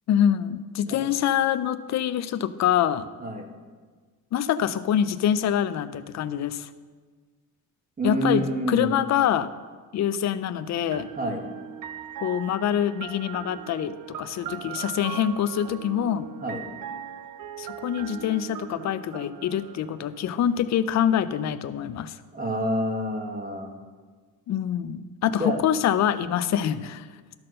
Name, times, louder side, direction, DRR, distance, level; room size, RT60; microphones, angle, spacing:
voice 1, 0.1-3.1 4.3-6.7 8.0-9.5 9.9-11.1 12.2-16.3 17.6-22.2 24.5-27.1, left 9 dB, 45° left, 13 dB, 0.5 m, -25 dB
voice 2, 3.2-3.5 8.0-8.9 11.2-11.4 16.4-16.7 22.3-23.8 25.4-25.6, right 1 dB, 20° right, 2 dB, 1.4 m, -27 dB
sound 1, 10.9-20.7, right 9 dB, 60° right, 0.7 m, -40 dB
12.5 x 4.4 x 6.4 m, 1.5 s
cardioid pair, 130°, 38 cm